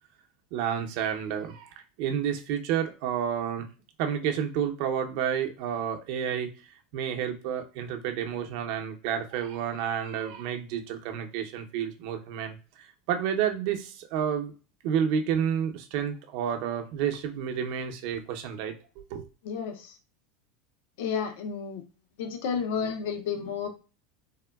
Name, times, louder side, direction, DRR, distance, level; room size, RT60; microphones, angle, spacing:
voice 1, 0.5-1.7 2.0-3.7 4.0-6.5 6.9-14.5 14.8-18.7 19.1-19.3, right 8 dB, 65° right, 5 dB, 0.6 m, -30 dB
voice 2, 19.4-20.0 21.0-21.8 22.2-23.7, left 6 dB, 75° left, 6 dB, 0.5 m, -31 dB
3.5 x 2.2 x 2.3 m, 0.34 s
supercardioid pair, 110°, 0 cm